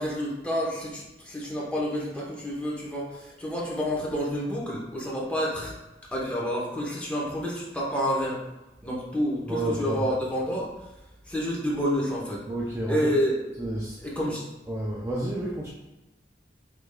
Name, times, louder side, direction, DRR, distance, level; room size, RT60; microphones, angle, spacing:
voice 1, 0.0-5.7 6.1-8.4 8.8-10.7 11.2-12.4 12.9-13.4 14.0-14.4, equal, 5° left, -5 dB, 0.9 m, -29 dB
voice 2, 9.5-10.1 12.5-13.1 13.5-14.0 14.7-15.7, right 1 dB, 15° right, -5 dB, 0.4 m, -30 dB
4.7 x 3.4 x 2.2 m, 1.0 s
head